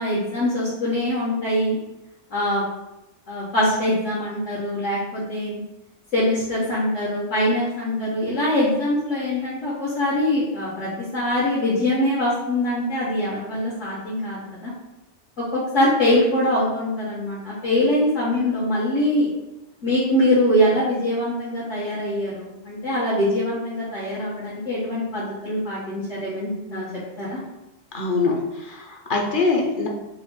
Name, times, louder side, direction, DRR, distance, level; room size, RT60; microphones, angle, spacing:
voice 1, 0.0-1.8 2.3-2.6 3.3-5.6 6.1-14.7 15.5-19.3 19.8-26.9 27.2-27.4, left 1 dB, 90° left, -12 dB, 1.6 m, -23 dB
voice 2, 27.9-29.9, left 3 dB, 50° left, -1 dB, 0.8 m, -23 dB
4.1 x 2.4 x 3.8 m, 0.96 s
omnidirectional pair, 1.2 m